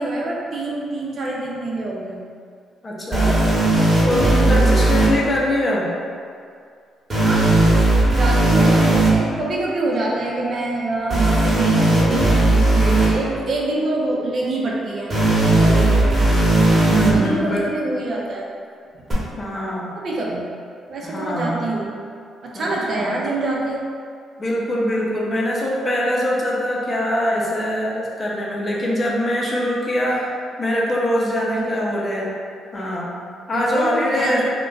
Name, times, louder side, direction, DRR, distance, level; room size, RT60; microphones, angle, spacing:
voice 1, 0.0-2.2 4.4-4.9 7.2-7.6 8.1-15.1 15.4-16.2 16.9-18.5 18.9-19.0 20.0-20.5 20.9-21.9 22.4-23.8 33.5-34.4, right 2 dB, 55° right, -3 dB, 0.5 m, -26 dB
voice 2, 2.8-3.6 4.0-5.9 16.8-17.7 19.4-19.9 21.0-21.7 22.5-22.7 23.0-23.2 24.4-30.3 30.6-32.3 32.7-33.1 33.5-34.4, equal, 30° left, -4 dB, 0.6 m, -23 dB
sound 1, 3.1-5.1 7.1-9.1 11.1-13.1 15.1-17.1 19.1-19.2, right 2 dB, 30° right, 1.0 m, -16 dB
2.4 x 2.2 x 3.8 m, 2.2 s
cardioid pair, 90°, 0 cm